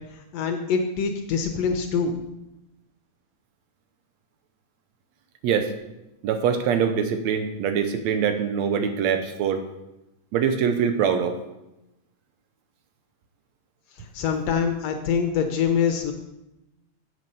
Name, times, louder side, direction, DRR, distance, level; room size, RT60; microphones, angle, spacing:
voice 1, 0.3-2.1 14.0-16.1, left 6 dB, 70° left, 6 dB, 1.7 m, -24 dB
voice 2, 6.2-9.6 10.3-11.4, right 7 dB, 75° right, 7 dB, 1.8 m, -23 dB
7.6 x 7.5 x 5.4 m, 0.93 s
omnidirectional pair, 3.4 m